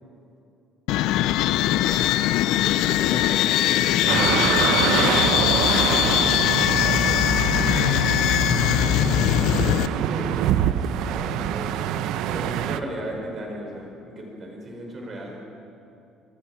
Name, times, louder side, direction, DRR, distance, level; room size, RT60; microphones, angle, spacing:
sound 1, 0.9-9.9, left 14 dB, 65° left, 0.5 m, -21 dB
voice 1, 1.7-4.0 5.3-5.8 6.7-9.1 9.6-11.8 12.2-15.4, right 1 dB, 25° right, 1 dB, 4.7 m, -37 dB
sound 2, 4.1-12.8, right 10 dB, 65° right, 0.8 m, -25 dB
voice 2, 14.8-15.2, left 2 dB, 15° left, -1 dB, 2.2 m, -41 dB
26.0 x 23.5 x 5.9 m, 2.7 s
cardioid pair, 180°, 0 cm